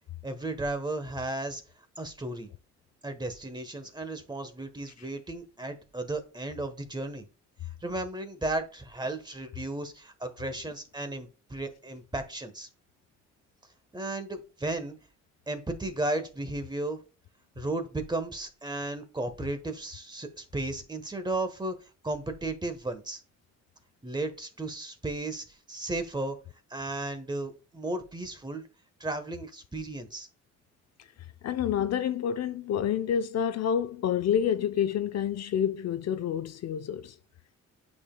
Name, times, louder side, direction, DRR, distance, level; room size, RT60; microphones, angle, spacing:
voice 1, 0.2-1.6 2.0-2.5 3.0-7.3 7.8-12.7 13.9-15.0 15.5-17.0 17.6-21.7 22.0-23.2 24.0-26.4 26.7-28.6 29.0-30.3, right 2 dB, 15° right, 1.1 m, -34 dB
voice 2, 31.4-37.2, left 9 dB, 60° left, 0.6 m, -28 dB
8.3 x 5.2 x 2.2 m
cardioid pair, 90°, 30 cm